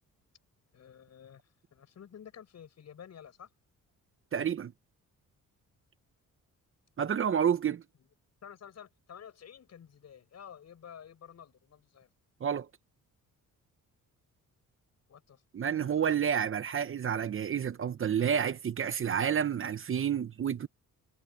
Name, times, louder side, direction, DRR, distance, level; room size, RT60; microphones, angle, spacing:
voice 1, 0.7-1.4 1.7-3.5 8.4-12.1 15.1-16.1, left 8 dB, 55° left, 7.7 m, -51 dB
voice 2, 4.3-4.7 7.0-7.8 12.4-12.7 15.5-20.7, right 8 dB, 40° right, 0.9 m, -29 dB
cardioid pair, 120°, 31 cm